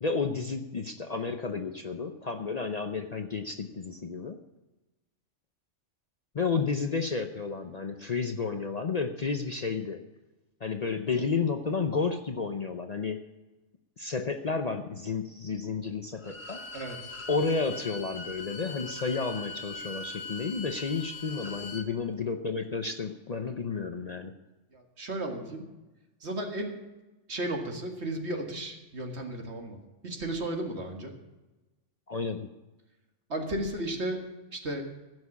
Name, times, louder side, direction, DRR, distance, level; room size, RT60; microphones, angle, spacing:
voice 1, 0.0-4.4 6.3-10.0 10.6-13.2 14.0-16.6 17.3-24.3 32.1-32.5, left 4 dB, 40° left, 6 dB, 0.6 m, -31 dB
Bowed string instrument, 16.2-21.9, left 3 dB, 60° left, 1.8 m, -41 dB
voice 2, 16.7-17.1 24.7-25.6 26.2-26.8 27.3-29.8 30.0-31.1 33.3-34.2 34.5-34.8, right 1 dB, 65° right, 3 dB, 2.1 m, -34 dB
16.0 x 6.3 x 8.3 m, 1.1 s
omnidirectional pair, 1.3 m